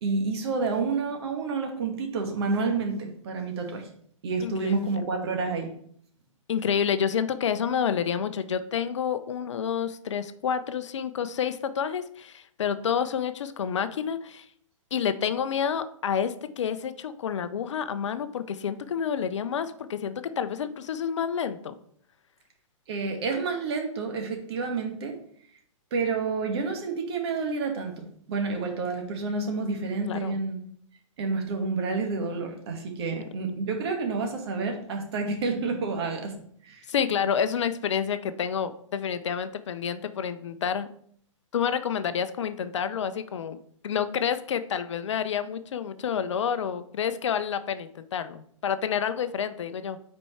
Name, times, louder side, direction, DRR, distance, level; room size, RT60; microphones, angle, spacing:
voice 1, 0.0-3.9 4.2-5.7 22.9-25.1 25.9-30.6 31.2-36.3 36.6-36.8, right 4 dB, 50° right, 3 dB, 1.5 m, -29 dB
voice 2, 4.4-5.1 6.5-14.5 14.9-21.7 30.1-30.4 36.9-40.9 41.5-43.6 43.8-50.0, left 7 dB, 65° left, 12 dB, 0.6 m, -29 dB
5.3 x 4.5 x 4.2 m, 0.63 s
figure-of-eight pair, 115°, 17 cm